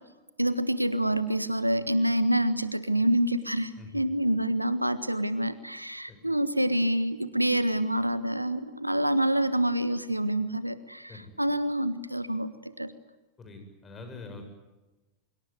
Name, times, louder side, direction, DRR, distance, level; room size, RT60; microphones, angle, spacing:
voice 1, 0.4-12.9, right 1 dB, 90° right, 14 dB, 1.4 m, -27 dB
voice 2, 13.4-14.4, left 3 dB, 20° left, 5 dB, 7.8 m, -44 dB
25.0 x 23.5 x 9.3 m, 1.1 s
figure-of-eight pair, 90°, 0 cm